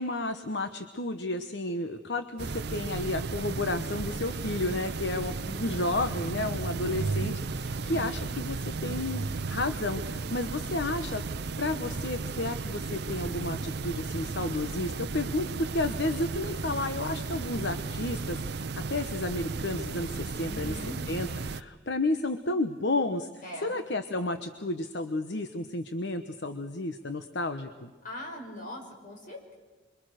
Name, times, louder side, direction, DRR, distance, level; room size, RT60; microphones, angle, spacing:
voice 1, 0.0-11.2 11.6-20.7 21.1-23.3 23.6-27.9, left 2 dB, 65° left, 8 dB, 1.1 m, -32 dB
sound 1, 2.4-21.6, right 3 dB, 60° right, 0.7 m, -34 dB
voice 2, 5.1-5.7 6.7-7.1 7.6-7.9 20.4-21.0 23.4-23.8 28.0-29.6, left 1 dB, 45° left, 0 dB, 6.4 m, -42 dB
26.5 x 23.5 x 6.6 m, 1.3 s
head